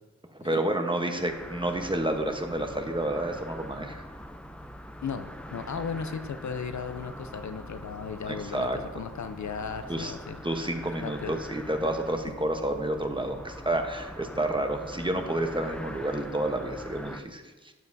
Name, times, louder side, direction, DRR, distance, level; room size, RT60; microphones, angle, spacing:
voice 1, 0.3-4.0 8.3-8.8 9.9-10.1 10.4-17.7, right 1 dB, 15° right, 4 dB, 1.0 m, -30 dB
sound 1, 0.8-17.2, equal, 5° left, 0.5 m, -44 dB
sound 2, 1.2-17.0, equal, 85° right, 2.5 m, -50 dB
voice 2, 5.0-10.4 11.0-11.4, left 6 dB, 75° left, 9 dB, 0.5 m, -36 dB
12.5 x 7.2 x 2.7 m, 1.3 s
cardioid pair, 45°, 29 cm